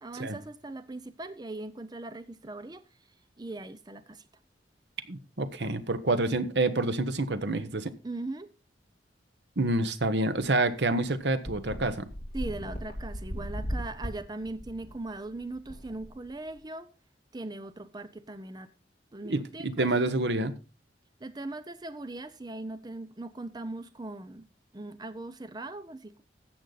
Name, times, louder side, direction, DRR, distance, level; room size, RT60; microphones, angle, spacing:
voice 1, 0.0-2.8 3.4-4.2 8.0-8.5 12.3-16.9 17.3-18.7 19.1-19.9 21.2-24.5 24.7-26.2, right 2 dB, 25° right, 0.6 m, -39 dB
voice 2, 5.1-7.9 9.6-12.1 19.2-20.5, right 2 dB, 75° right, 1.1 m, -28 dB
sound 1, 10.5-10.6 10.8-10.9 11.4-16.6, equal, 35° left, 3.2 m, -38 dB
13.5 x 8.0 x 4.0 m
head